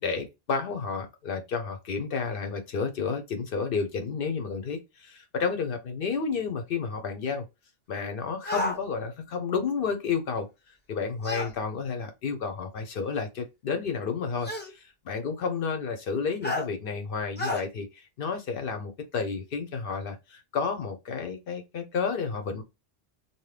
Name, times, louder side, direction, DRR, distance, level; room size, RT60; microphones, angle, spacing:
voice 1, 0.0-7.5 7.9-10.5 10.9-22.6, left 5 dB, 60° left, 0.8 m, -31 dB
sound 1, 8.4-8.8 11.2-11.5 12.8-12.9 14.4-14.7 16.4-16.7 17.4-17.6, left 1 dB, 15° left, 0.4 m, -30 dB
2.7 x 2.2 x 3.2 m
omnidirectional pair, 1.1 m